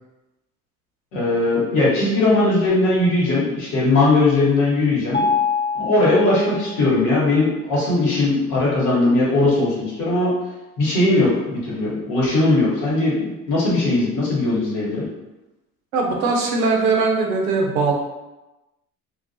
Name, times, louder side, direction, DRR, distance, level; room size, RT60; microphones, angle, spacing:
voice 1, 1.1-5.2 5.7-10.3 10.8-15.0, left 2 dB, 75° left, -6 dB, 1.2 m, -19 dB
Mallet percussion, 5.1-7.1, left 5 dB, 30° left, 0.9 m, -24 dB
voice 2, 15.9-17.9, right 4 dB, 90° right, 0 dB, 0.6 m, -20 dB
2.3 x 2.2 x 2.6 m, 1.0 s
hypercardioid pair, 65°, 41 cm